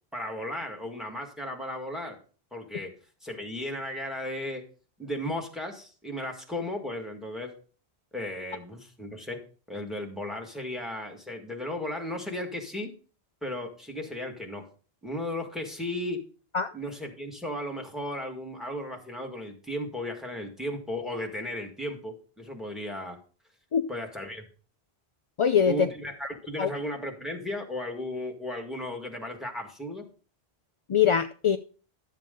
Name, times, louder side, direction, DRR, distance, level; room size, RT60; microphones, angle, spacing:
voice 1, 0.1-2.2 2.5-4.6 5.0-7.5 8.1-9.4 9.7-12.9 13.4-14.7 15.0-16.2 16.7-23.2 23.9-24.4 25.6-30.1, left 1 dB, ahead, 3 dB, 1.7 m, -35 dB
voice 2, 25.4-25.9 26.6-26.7 30.9-31.6, left 7 dB, 50° left, 8 dB, 0.3 m, -22 dB
12.0 x 7.6 x 3.8 m, 0.39 s
omnidirectional pair, 1.1 m